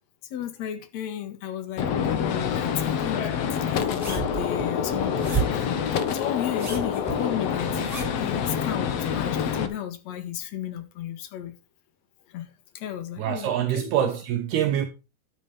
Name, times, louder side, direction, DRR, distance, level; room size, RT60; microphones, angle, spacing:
voice 1, 0.3-3.3 3.7-7.7 8.2-11.5 12.3-13.9, left 11 dB, 55° left, 2.2 m, -34 dB
Gunshot gunfire, 1.8-9.7, left 7 dB, 70° left, 1.5 m, -27 dB
sound 1, 2.1-9.0, left 10 dB, 85° left, 3.4 m, -41 dB
sound 2, 4.0-5.7 6.4-8.3 9.0-9.1, right 5 dB, 10° right, 6.0 m, -31 dB
voice 2, 13.2-14.9, right 10 dB, 70° right, 2.9 m, -25 dB
12.5 x 9.2 x 3.5 m
omnidirectional pair, 5.0 m